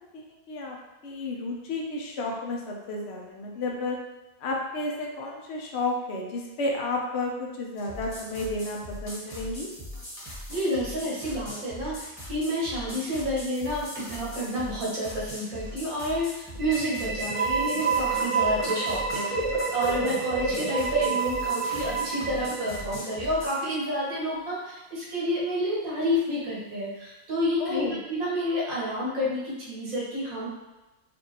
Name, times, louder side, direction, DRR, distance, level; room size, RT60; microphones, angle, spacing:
voice 1, 0.1-0.8 1.0-4.0 4.4-9.7 27.6-28.0, left 2 dB, 55° left, -1 dB, 0.9 m, -32 dB
sound 1, 7.8-23.6, equal, 15° left, 1.3 m, -40 dB
voice 2, 10.2-19.4 19.7-30.5, equal, 80° right, -6 dB, 1.6 m, -29 dB
sound 2, 16.6-23.3, right 4 dB, 35° right, 0.6 m, -28 dB
5.2 x 2.7 x 2.9 m, 1.1 s
omnidirectional pair, 1.4 m